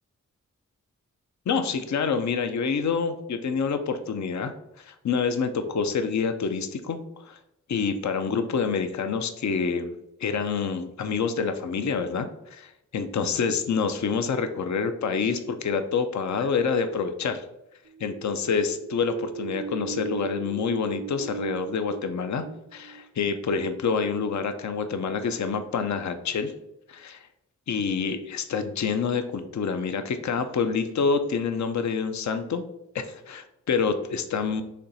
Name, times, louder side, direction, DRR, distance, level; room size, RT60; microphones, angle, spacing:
voice 1, 1.5-7.4 7.7-17.5 18.0-22.4 22.7-26.5 26.9-27.3 27.7-32.6 32.9-34.6, left 5 dB, 65° left, 9 dB, 0.5 m, -27 dB
sound 1, 17.9-23.5, right 6 dB, 70° right, 0.4 m, -38 dB
4.3 x 3.1 x 3.9 m, 0.84 s
cardioid pair, 45°, 31 cm